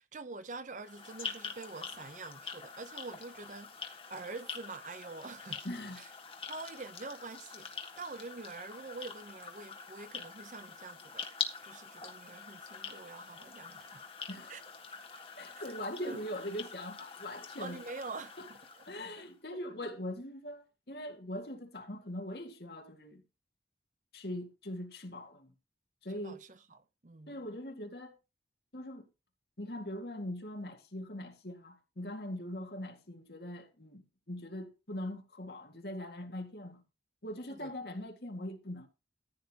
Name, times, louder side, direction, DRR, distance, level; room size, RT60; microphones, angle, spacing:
voice 1, 0.0-3.7 4.1-5.6 6.0-6.1 6.5-11.3 11.6-14.1 14.5-14.6 15.5-15.6 16.0-16.2 17.6-18.8 19.2-19.3 26.2-27.4 37.5-37.7, right 3 dB, 45° right, 0.7 m, -46 dB
sound 1, 0.8-19.3, left 6 dB, 30° left, 1.4 m, -45 dB
voice 2, 5.6-6.0 14.3-14.7 15.4-17.8 18.4-18.5 18.9-23.2 24.1-25.5 26.0-26.4 27.3-28.2 28.7-29.0 29.6-36.8 37.2-38.9, left 1 dB, 60° left, 2.0 m, -41 dB
14.5 x 9.1 x 2.9 m
head